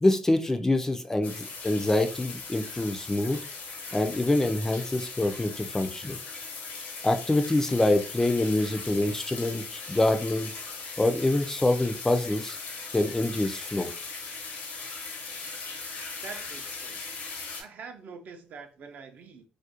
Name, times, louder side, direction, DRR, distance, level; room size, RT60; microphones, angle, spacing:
voice 1, 0.0-3.4 3.9-6.2 7.0-10.5 11.0-12.6 12.9-13.9, left 2 dB, 15° left, 6 dB, 0.3 m, -25 dB
sound 1, 1.2-17.6, left 4 dB, 70° left, 0.7 m, -39 dB
voice 2, 16.2-17.2 17.6-19.5, right 5 dB, 65° right, 6 dB, 0.4 m, -45 dB
2.4 x 2.1 x 2.7 m, 0.38 s
cardioid pair, 85°, 3 cm